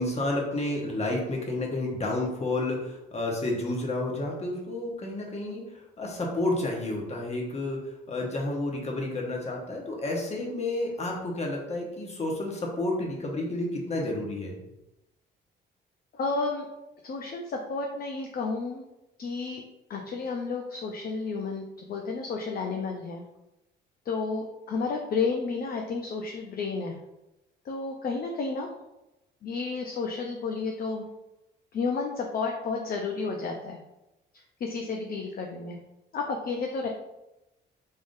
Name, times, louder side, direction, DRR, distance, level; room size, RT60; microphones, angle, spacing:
voice 1, 0.0-5.6 6.0-14.6, left 2 dB, 35° left, -1 dB, 1.1 m, -30 dB
voice 2, 16.2-16.7 17.0-18.8 19.2-19.6 19.9-23.2 24.1-26.9 27.7-28.7 29.4-31.0 31.7-33.8 34.6-35.8 36.1-36.9, left 4 dB, 50° left, 2 dB, 0.5 m, -31 dB
3.6 x 3.5 x 2.6 m, 0.93 s
cardioid pair, 90°, 20 cm